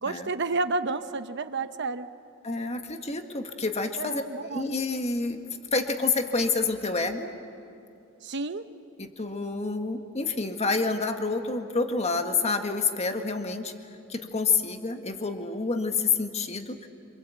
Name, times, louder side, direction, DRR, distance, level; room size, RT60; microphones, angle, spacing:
voice 1, 0.0-2.1 4.0-4.7 8.2-8.6, right 3 dB, 60° right, 10 dB, 1.0 m, -30 dB
voice 2, 2.4-4.2 4.5-5.4 5.7-7.3 9.0-13.7 14.1-16.9, left 4 dB, 30° left, 5 dB, 1.7 m, -28 dB
26.5 x 26.5 x 8.4 m, 2.7 s
head